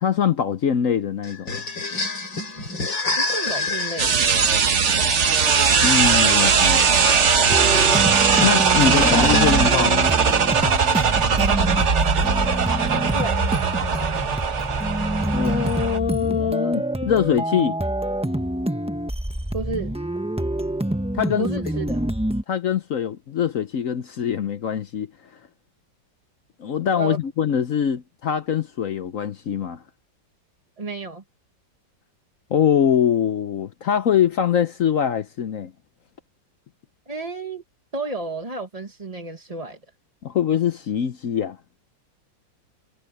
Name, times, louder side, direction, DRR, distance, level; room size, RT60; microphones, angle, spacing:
voice 1, 0.0-1.6 5.8-6.9 8.4-10.1 15.3-17.8 21.1-21.5 22.5-25.1 26.6-29.8 32.5-35.7 40.2-41.6, left 8 dB, 60° left, 0.9 m, -23 dB
sound 1, 1.2-9.9, left 3 dB, 80° left, 5.9 m, -29 dB
voice 2, 3.2-4.2 6.3-6.8 13.1-13.5 19.5-19.9 21.4-22.0 26.9-27.2 30.8-31.2 37.1-37.6 37.9-39.8, right 3 dB, 20° right, 1.6 m, -31 dB
sound 2, 4.0-16.0, right 6 dB, 45° right, 1.3 m, -19 dB
sound 3, 7.5-22.4, right 1 dB, 5° right, 0.8 m, -26 dB
omnidirectional pair, 2.0 m